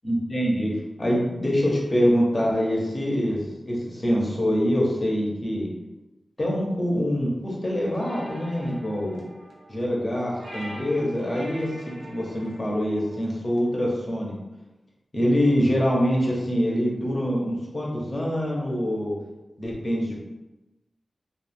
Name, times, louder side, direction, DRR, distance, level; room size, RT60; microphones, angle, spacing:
voice 1, 0.0-5.7 6.4-9.2 9.7-11.8 12.1-14.3 15.1-19.1 19.6-20.2, equal, 30° left, -3 dB, 0.8 m, -25 dB
sound 1, 7.8-13.8, equal, 75° right, 0.7 m, -44 dB
2.4 x 2.3 x 3.4 m, 1.0 s
wide cardioid pair, 85°, 0 cm